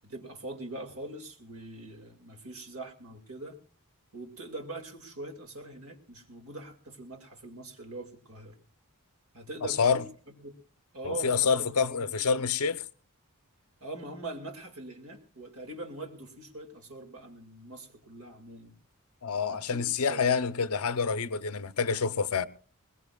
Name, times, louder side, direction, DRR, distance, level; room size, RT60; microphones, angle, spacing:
voice 1, 0.0-3.6 4.1-8.6 9.3-10.1 10.4-10.5 10.9-12.3 13.8-18.8 19.5-20.6, right 2 dB, 75° right, 2.2 m, -42 dB
voice 2, 11.0-12.8 19.2-22.5, left 5 dB, 70° left, 0.7 m, -27 dB
21.0 x 20.5 x 2.3 m
head